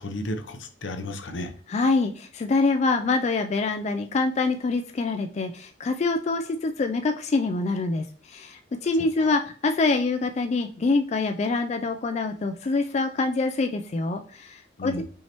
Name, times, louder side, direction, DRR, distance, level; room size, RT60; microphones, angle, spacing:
voice 1, 0.0-1.5 9.2-9.4 14.8-15.0, left 1 dB, 75° left, 0.7 m, -33 dB
voice 2, 1.7-15.0, left 3 dB, 35° left, 0.3 m, -25 dB
5.4 x 3.2 x 3.0 m
head